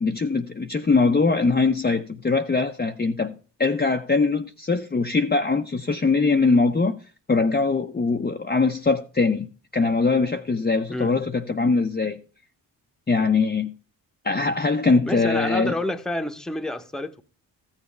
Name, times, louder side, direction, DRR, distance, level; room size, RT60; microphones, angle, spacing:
voice 1, 0.0-7.0 7.3-12.2 13.1-13.7 14.2-15.7, left 4 dB, 20° left, 0.8 m, -22 dB
voice 2, 15.1-17.2, left 1 dB, ahead, 1.0 m, -29 dB
14.5 x 7.3 x 3.3 m
hypercardioid pair, 40°, 48 cm